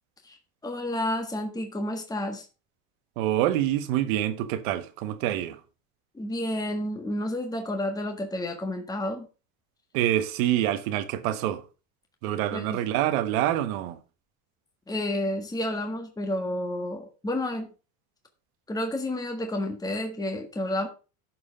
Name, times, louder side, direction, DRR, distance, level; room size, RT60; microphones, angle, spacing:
voice 1, 0.6-2.5 6.1-9.3 12.5-12.8 14.9-17.7 18.7-20.9, left 1 dB, 10° left, 1.5 m, -30 dB
voice 2, 3.2-5.6 9.9-11.6 12.2-14.0, right 12 dB, 75° right, 1.5 m, -26 dB
12.0 x 4.8 x 5.1 m
supercardioid pair, 115°, 42 cm